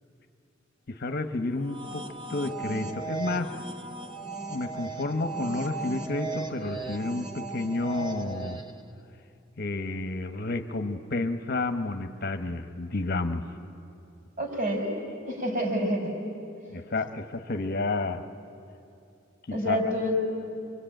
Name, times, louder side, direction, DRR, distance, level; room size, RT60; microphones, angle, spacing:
voice 1, 0.9-3.5 4.5-8.6 9.6-13.4 16.7-18.2 19.5-19.8, left 2 dB, 50° left, 8 dB, 1.0 m, -30 dB
sound 1, 1.5-8.9, right 4 dB, 25° right, 1.0 m, -37 dB
voice 2, 14.4-14.9 15.3-16.1 19.5-20.2, equal, 45° right, 0 dB, 5.1 m, -27 dB
25.5 x 23.0 x 9.0 m, 2.6 s
head